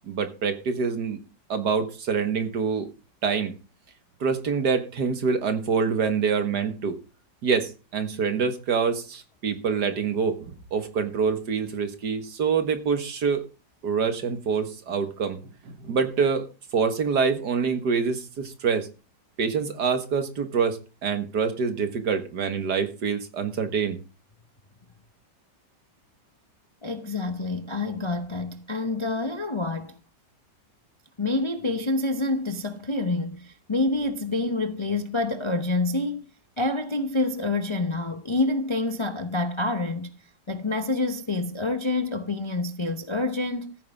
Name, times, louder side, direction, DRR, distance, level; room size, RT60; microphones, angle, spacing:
voice 1, 0.1-1.2 1.5-2.9 3.2-3.5 4.2-7.0 7.4-13.4 13.8-15.4 15.7-16.5 16.7-18.9 19.4-24.0, right 5 dB, 70° right, 2.1 m, -26 dB
voice 2, 26.8-30.0 31.2-36.2 36.6-40.1 40.5-43.8, left 2 dB, 30° left, 0.6 m, -27 dB
14.5 x 9.3 x 3.6 m
omnidirectional pair, 1.9 m